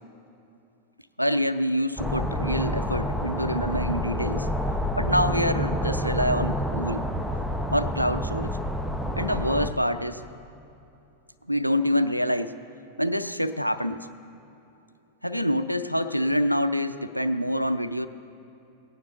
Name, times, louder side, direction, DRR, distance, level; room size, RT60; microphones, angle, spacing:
voice 1, 1.2-4.5 5.0-7.1 7.7-8.6 9.2-10.2 11.5-12.5 13.0-14.1 15.2-18.1, equal, 90° left, 11 dB, 0.5 m, -26 dB
sound 1, 2.0-9.7, equal, ahead, 0.8 m, -28 dB
18.5 x 9.8 x 6.6 m, 2.8 s
figure-of-eight pair, 90°, 0 cm